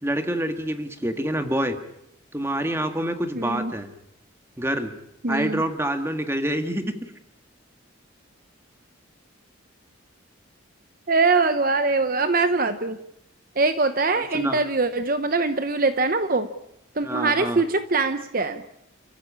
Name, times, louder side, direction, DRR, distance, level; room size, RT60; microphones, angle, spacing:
voice 1, 0.0-1.8 2.3-3.9 4.6-4.9 5.3-6.9 14.2-14.6 17.0-17.6, right 1 dB, 10° right, 7 dB, 1.8 m, -27 dB
voice 2, 3.3-3.7 5.2-5.6 11.1-13.0 13.6-16.5 17.0-18.6, right 3 dB, 45° right, 10 dB, 0.9 m, -22 dB
30.0 x 15.0 x 8.8 m, 0.80 s
head